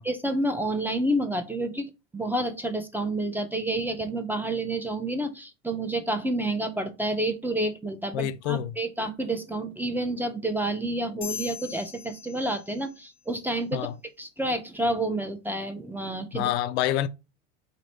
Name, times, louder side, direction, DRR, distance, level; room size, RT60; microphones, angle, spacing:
voice 1, 0.0-13.9 14.2-16.5, right 1 dB, 5° right, 0.5 m, -29 dB
voice 2, 8.1-8.8 13.7-13.9 16.3-17.1, left 12 dB, 70° left, 0.5 m, -27 dB
sound 1, 11.2-13.1, left 7 dB, 35° left, 0.8 m, -40 dB
3.1 x 2.6 x 4.2 m
hypercardioid pair, 95°, 35 cm